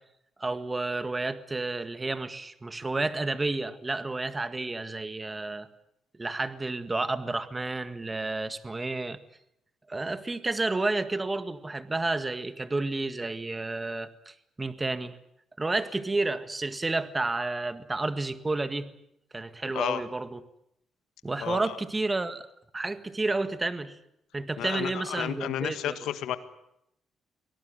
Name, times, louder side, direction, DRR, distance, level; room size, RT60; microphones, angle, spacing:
voice 1, 0.4-5.7 6.2-9.2 9.9-15.2 15.6-18.9 19.3-20.4 21.2-22.5 22.7-24.0 24.3-26.0, right 2 dB, 20° right, 12 dB, 1.8 m, -31 dB
voice 2, 21.4-21.8 24.6-26.4, left 11 dB, 85° left, 11 dB, 1.8 m, -32 dB
23.5 x 18.0 x 9.5 m, 0.80 s
cardioid pair, 90°, 0 cm